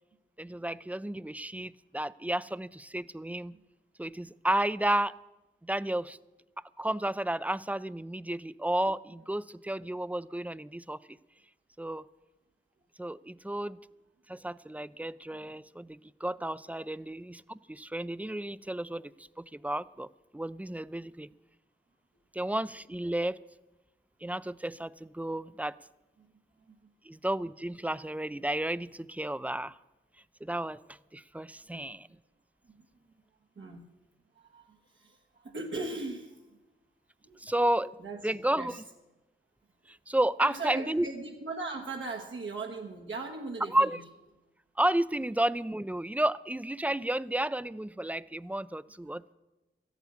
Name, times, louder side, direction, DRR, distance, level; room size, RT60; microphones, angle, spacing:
voice 1, 0.4-3.6 4.0-5.2 5.6-6.2 6.8-11.0 11.8-12.0 13.0-13.8 14.3-19.1 19.4-20.1 20.3-21.3 22.3-23.4 24.2-25.8 27.0-29.8 30.4-32.1 37.4-38.0 38.2-38.8 39.9-41.1 43.7-44.0 44.8-49.3, right 1 dB, 5° right, 18 dB, 0.4 m, -32 dB
voice 2, 33.6-33.9 34.3-36.4 37.2-37.4 38.0-38.2 38.6-38.8 40.4-44.0 49.1-49.2, right 3 dB, 80° right, 0 dB, 1.4 m, -39 dB
13.5 x 8.1 x 8.5 m, 1.1 s
cardioid pair, 55°, 20 cm